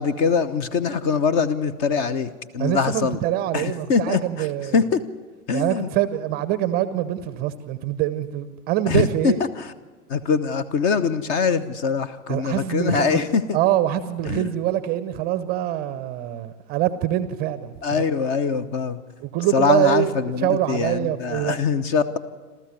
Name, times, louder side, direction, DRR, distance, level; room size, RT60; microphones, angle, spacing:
voice 1, 0.0-3.2 3.5-4.5 4.7-5.0 5.5-5.9 8.9-9.7 10.1-13.6 14.2-14.5 17.8-19.0 19.5-22.2, left 5 dB, 30° left, 16 dB, 1.0 m, -23 dB
voice 2, 2.6-4.8 5.5-9.4 12.3-13.2 13.5-18.0 19.2-21.6, right 13 dB, 20° right, 14 dB, 0.7 m, -24 dB
28.5 x 13.5 x 8.1 m, 1.4 s
figure-of-eight pair, 100°, 46 cm